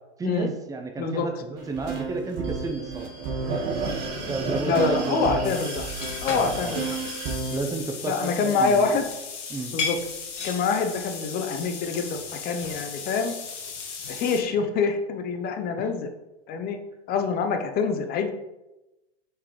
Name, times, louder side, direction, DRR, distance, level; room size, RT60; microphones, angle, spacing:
voice 1, 0.2-3.1 4.3-5.6 6.3-6.8 7.5-9.0 9.5-9.7 15.8-15.9, right 3 dB, 10° right, 5 dB, 0.6 m, -32 dB
sound 1, 1.6-7.6, right 4 dB, 40° right, 1.3 m, -31 dB
voice 2, 4.6-5.8 6.2-6.9 8.1-9.1 9.7-10.0 10.4-13.3 14.1-16.1 16.5-16.8 17.1-18.3, left 5 dB, 25° left, 6 dB, 0.7 m, -25 dB
sound 2, 5.4-14.4, left 5 dB, 85° left, 1.6 m, -35 dB
7.1 x 4.7 x 3.1 m, 0.98 s
hypercardioid pair, 125°, 35 cm